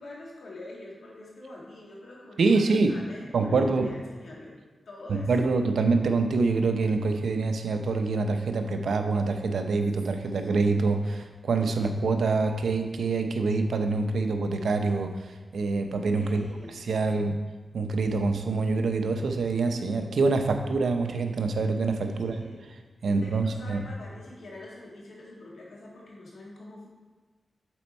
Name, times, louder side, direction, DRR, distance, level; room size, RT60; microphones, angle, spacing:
voice 1, 0.0-4.6 4.8-5.3 10.2-10.5 16.2-16.7 17.0-17.3 22.1-22.6 23.0-26.9, left 2 dB, 85° left, -4 dB, 1.8 m, -45 dB
voice 2, 2.4-2.9 3.3-3.9 5.1-15.1 15.5-16.4 16.7-17.4 17.7-22.4 23.0-23.8, right 3 dB, 90° right, 6 dB, 0.6 m, -25 dB
7.1 x 4.4 x 4.4 m, 1.3 s
cardioid pair, 75°, 0 cm